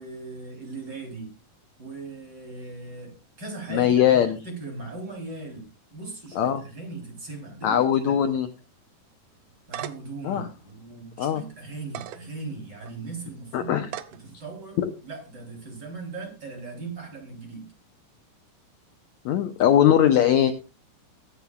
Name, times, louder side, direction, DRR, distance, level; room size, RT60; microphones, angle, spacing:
voice 1, 0.0-1.3 1.8-8.2 9.7-17.7, right 3 dB, 30° right, 2 dB, 4.1 m, -39 dB
voice 2, 3.7-4.4 6.4-6.6 7.6-8.5 10.2-10.5 11.2-11.4 13.5-13.9 14.8-14.9 19.3-20.5, left 10 dB, 75° left, 8 dB, 1.8 m, -20 dB
sound 1, 9.4-10.2 10.7-10.8 11.8-12.2 12.8-13.0 13.8-14.2, right 12 dB, 85° right, 1.5 m, -36 dB
22.0 x 9.2 x 2.4 m, 0.29 s
omnidirectional pair, 4.1 m